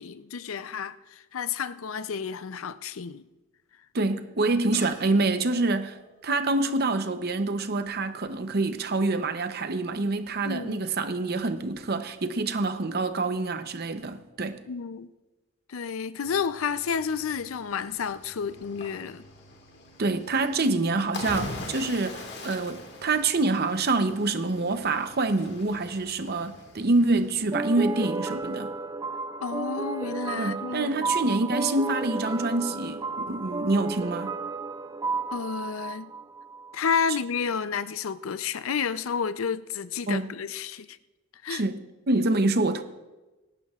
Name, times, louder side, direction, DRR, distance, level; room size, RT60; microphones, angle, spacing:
voice 1, 0.0-3.2 10.4-10.9 14.7-15.1 15.7-19.2 29.4-31.1 35.3-36.1 36.7-41.0 41.4-41.6, left 6 dB, 85° left, 0.5 m, -31 dB
voice 2, 3.9-14.6 20.0-28.7 30.4-34.3 40.1-40.3 41.5-41.8 42.1-42.8, right 2 dB, 50° right, 0.7 m, -26 dB
sound 1, 4.7-8.0 11.2-11.3, right 2 dB, 35° right, 3.0 m, -49 dB
Cricket / Waves surf, 16.2-27.5, left 2 dB, 55° left, 1.8 m, -43 dB
sound 2, 27.5-36.8, right 3 dB, 15° right, 0.3 m, -32 dB
24.5 x 12.0 x 2.4 m
head